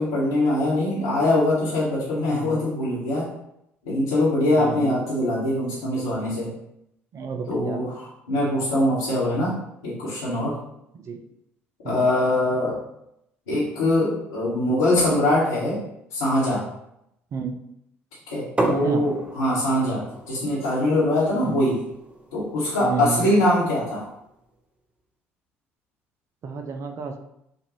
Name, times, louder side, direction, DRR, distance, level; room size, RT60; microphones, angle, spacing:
voice 1, 0.0-3.3 3.8-6.5 7.5-8.0 8.3-9.5 9.8-10.6 11.8-12.8 13.5-15.8 16.1-16.6 18.3-21.8 22.3-24.0, left 1 dB, 75° left, -10 dB, 1.5 m, -23 dB
voice 2, 4.6-4.9 7.1-7.8 10.9-11.2 11.8-12.0 17.3-17.6 18.7-19.0 21.4-21.7 22.8-23.3 26.4-27.2, right 5 dB, 45° right, 6 dB, 0.6 m, -31 dB
sound 1, 18.6-24.2, right 2 dB, 15° right, 1.0 m, -33 dB
6.6 x 2.6 x 3.1 m, 0.79 s
figure-of-eight pair, 55°, 7 cm